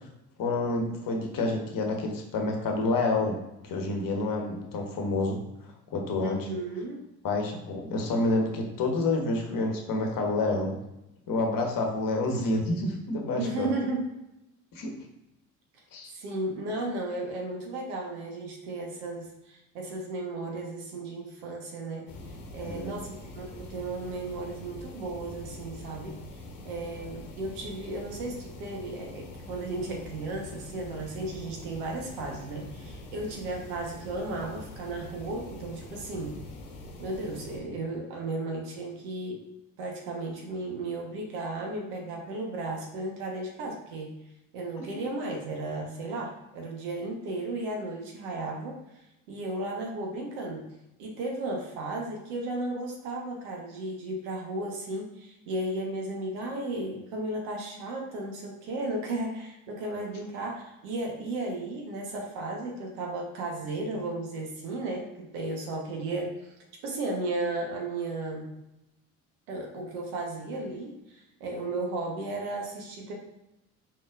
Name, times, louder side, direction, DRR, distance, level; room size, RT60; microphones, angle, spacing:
voice 1, 0.4-3.4 3.6-5.4 5.9-6.5 7.2-10.8 11.3-13.7 14.7-14.9 15.9-16.1 22.6-23.0, left 2 dB, 45° left, 2 dB, 1.1 m, -28 dB
voice 2, 6.2-7.0 13.3-14.0 16.1-22.0 22.5-26.2 26.6-36.3 37.0-39.4 39.8-44.1 44.5-48.8 49.3-50.6 51.0-66.5 66.8-68.5 69.5-73.1, right 2 dB, 70° right, 0 dB, 1.2 m, -34 dB
sound 1, 22.1-37.6, left 2 dB, 70° left, 1.0 m, -44 dB
4.3 x 4.0 x 2.5 m, 0.89 s
hypercardioid pair, 60°, 45 cm